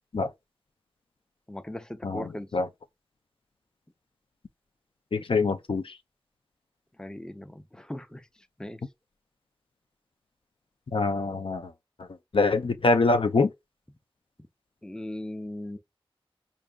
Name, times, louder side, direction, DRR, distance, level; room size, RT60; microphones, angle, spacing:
voice 1, 1.5-2.5 7.0-8.2 8.6-8.8 14.8-15.8, left 1 dB, 10° left, 0.5 m, -38 dB
voice 2, 2.0-2.7 5.1-6.0 10.9-11.7 12.3-13.5, left 3 dB, 70° left, 0.5 m, -24 dB
4.8 x 2.6 x 2.3 m
wide cardioid pair, 45°, 9 cm